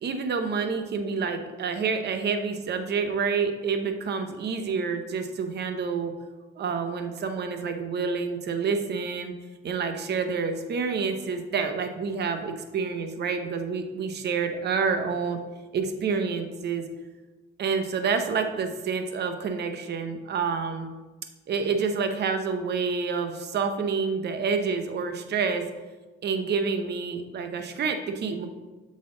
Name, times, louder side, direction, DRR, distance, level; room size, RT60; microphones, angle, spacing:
voice 1, 0.0-6.1 6.6-9.3 9.6-15.4 15.7-16.9 17.6-20.9 21.5-25.6 26.2-28.5, right 5 dB, 55° right, 7 dB, 0.8 m, -28 dB
7.3 x 4.2 x 3.8 m, 1.2 s
cardioid pair, 90°, 20 cm